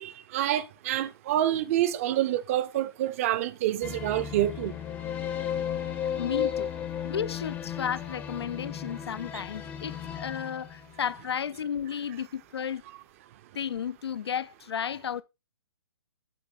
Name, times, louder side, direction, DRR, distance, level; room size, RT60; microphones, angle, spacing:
voice 1, 0.0-4.7, right 13 dB, 30° right, 0.6 m, -27 dB
sound 1, 3.8-11.3, left 9 dB, 10° left, 0.6 m, -34 dB
voice 2, 6.2-6.7 7.0-12.8 13.5-15.2, left 8 dB, 75° left, 0.4 m, -33 dB
7.6 x 4.4 x 3.9 m
hypercardioid pair, 145°, 14 cm